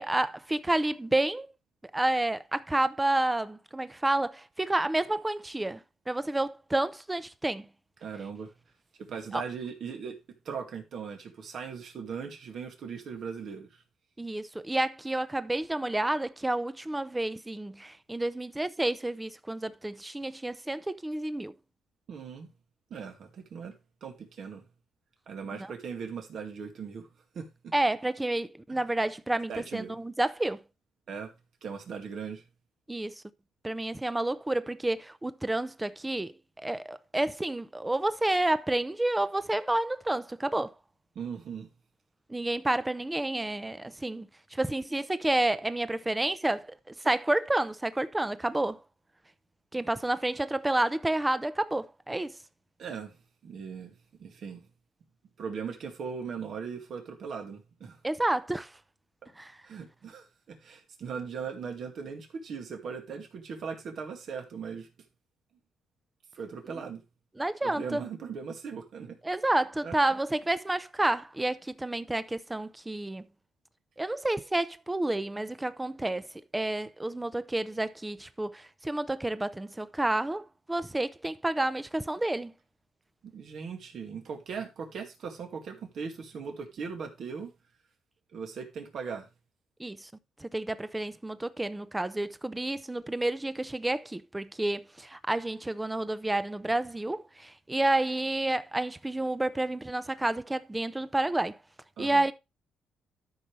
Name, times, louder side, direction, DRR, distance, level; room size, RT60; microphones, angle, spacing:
voice 1, 0.0-1.5 1.9-5.8 6.1-7.7 9.3-9.4 14.2-21.5 27.7-30.6 32.9-33.1 33.6-40.7 42.3-44.3 44.5-48.8 49.7-52.3 58.0-58.7 59.4-59.5 67.4-68.0 69.2-73.3 74.0-76.3 76.5-82.5 89.8-90.1 90.4-101.6 102.0-102.3, right 2 dB, 10° right, 0.7 m, -30 dB
voice 2, 8.0-8.5 9.0-10.2 10.4-13.8 22.1-22.5 22.9-23.7 24.0-24.6 25.3-27.1 27.3-27.7 28.7-28.8 29.5-29.9 31.1-31.3 31.6-32.4 41.2-41.7 52.8-53.2 53.4-54.7 55.4-58.0 59.6-64.9 66.3-67.0 67.6-69.2 69.8-70.2 83.2-87.5 88.3-89.3 102.0-102.3, right 6 dB, 60° right, 2.2 m, -39 dB
13.0 x 5.4 x 3.2 m
cardioid pair, 90°, 0 cm